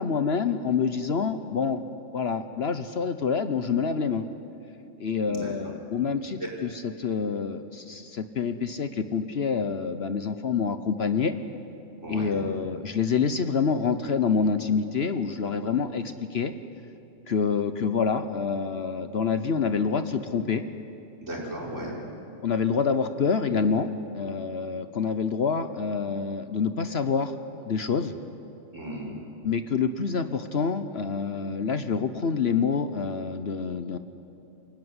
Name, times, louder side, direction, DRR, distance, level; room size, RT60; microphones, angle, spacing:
voice 1, 0.0-1.8 2.1-4.2 5.0-11.3 12.1-16.5 17.3-20.6 22.4-27.3 27.7-28.2 29.4-34.0, left 5 dB, 55° left, 10 dB, 1.0 m, -27 dB
voice 2, 5.3-5.7 6.4-6.5 12.0-12.4 21.2-22.0 28.7-29.2, right 1 dB, 60° right, -2 dB, 5.5 m, -35 dB
27.5 x 17.0 x 9.7 m, 2.7 s
omnidirectional pair, 1.4 m